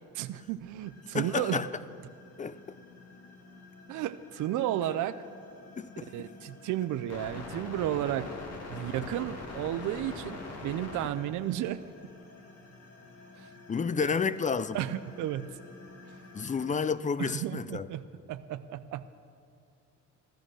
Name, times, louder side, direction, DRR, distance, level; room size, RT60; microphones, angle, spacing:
voice 1, 0.1-1.6 3.9-5.2 6.1-8.3 8.7-11.8 13.4-13.5 14.7-15.5 17.2-18.0 18.3-19.0, right 12 dB, 80° right, 0.5 m, -33 dB
sound 1, 0.8-16.9, left 3 dB, 55° left, 2.1 m, -46 dB
voice 2, 1.1-1.7 2.4-2.6 5.8-6.1 8.8-8.9 13.7-14.8 16.3-17.9, left 5 dB, 25° left, 0.5 m, -30 dB
15.5 x 11.5 x 6.2 m
cardioid pair, 90°, 30 cm